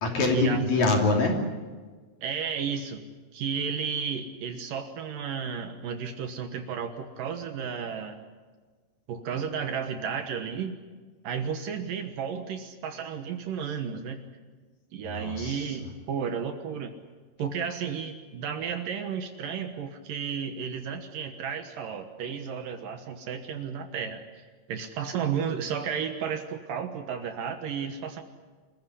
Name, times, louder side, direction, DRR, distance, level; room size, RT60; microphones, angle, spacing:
voice 1, 0.0-1.4 15.0-15.8, left 2 dB, 50° left, 1 dB, 4.1 m, -25 dB
voice 2, 2.2-3.0 3.3-8.2 9.1-10.8 11.2-14.2 14.9-16.9 17.4-24.2 24.7-28.2, right 7 dB, 65° right, 7 dB, 2.7 m, -33 dB
26.0 x 15.5 x 9.8 m, 1.4 s
omnidirectional pair, 4.6 m